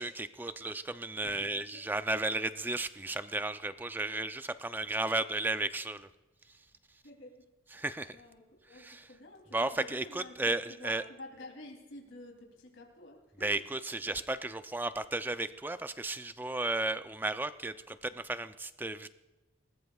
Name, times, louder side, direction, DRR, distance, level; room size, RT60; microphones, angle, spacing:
voice 1, 0.0-6.1 7.7-8.2 8.7-9.1 9.5-11.0 13.4-19.1, right 2 dB, 10° right, 11 dB, 0.4 m, -34 dB
voice 2, 1.2-1.8 7.0-7.4 7.7-8.4 8.7-10.4 10.7-13.5, left 2 dB, 75° left, 1 dB, 3.0 m, -50 dB
20.5 x 19.5 x 2.4 m, 1.1 s
head